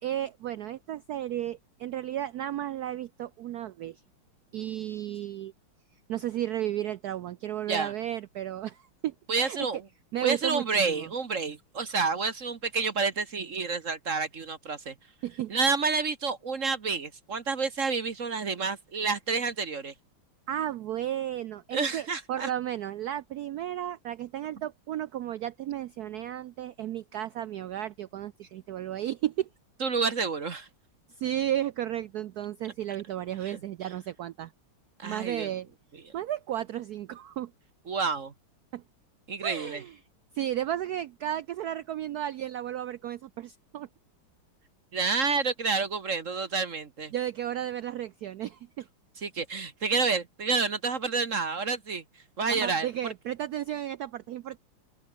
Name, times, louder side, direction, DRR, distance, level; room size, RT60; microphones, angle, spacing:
voice 1, 0.0-4.0 4.5-5.5 6.1-9.6 10.1-11.1 15.2-15.5 20.5-29.5 31.2-34.5 35.0-35.7 36.1-37.5 38.7-38.8 39.4-40.0 40.3-43.9 47.1-48.9 52.5-54.6, right 12 dB, 85° right, 0.8 m, -33 dB
voice 2, 9.3-9.8 10.2-14.9 15.5-19.9 21.7-22.5 29.8-30.7 33.4-33.6 35.0-35.5 37.9-38.3 39.3-39.8 44.9-47.1 49.2-52.0 52.4-52.9, right 4 dB, 40° right, 1.4 m, -29 dB
open air
omnidirectional pair, 2.3 m